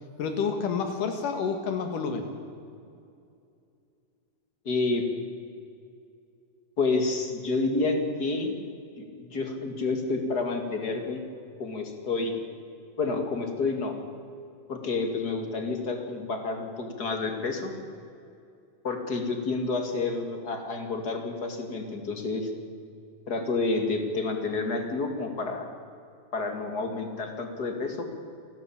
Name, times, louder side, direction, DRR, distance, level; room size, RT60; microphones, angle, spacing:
voice 1, 0.2-2.3, left 5 dB, 80° left, 6 dB, 3.2 m, -29 dB
voice 2, 4.6-5.0 6.8-8.5 9.0-11.2 11.6-12.3 13.0-13.9 14.7-17.7 18.8-22.5 23.3-25.7 26.3-28.1, left 3 dB, 35° left, 5 dB, 2.4 m, -29 dB
28.5 x 12.0 x 8.7 m, 2.5 s
omnidirectional pair, 3.7 m